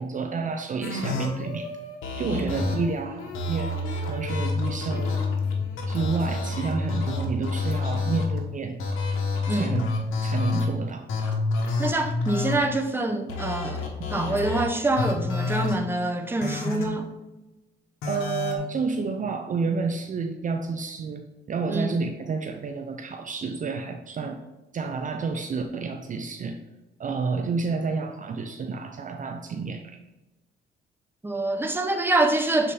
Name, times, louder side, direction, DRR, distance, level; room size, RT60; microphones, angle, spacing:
voice 1, 0.0-1.7 2.2-3.7 4.0-5.2 5.9-8.8 9.5-9.9 10.2-11.1 14.1-14.3 18.0-24.4 24.7-26.6 27.0-30.0, right 4 dB, 40° right, 5 dB, 0.5 m, -30 dB
sound 1, 0.8-8.4 8.8-10.7 11.1-12.6 13.3-14.6 15.0-15.7 16.4-16.8 18.0-18.6, left 3 dB, 85° left, 1.1 m, -28 dB
voice 2, 9.5-9.8 11.8-17.1 21.7-22.0 31.2-32.7, right 2 dB, 10° right, 4 dB, 0.7 m, -26 dB
6.8 x 4.1 x 3.3 m, 1.1 s
cardioid pair, 90°, 20 cm